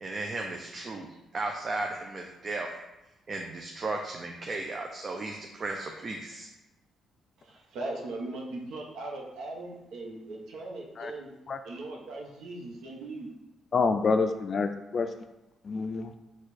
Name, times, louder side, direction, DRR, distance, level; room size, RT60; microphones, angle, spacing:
voice 1, 0.0-1.1 1.3-2.7 3.3-6.5, right 2 dB, 40° right, 2 dB, 0.4 m, -35 dB
voice 2, 7.4-11.3 11.6-13.3, right 2 dB, 80° right, 0 dB, 0.9 m, -39 dB
voice 3, 13.7-15.1 15.6-16.1, left 4 dB, 45° left, 9 dB, 0.3 m, -27 dB
4.6 x 2.4 x 4.1 m, 0.97 s
cardioid pair, 90°, 0 cm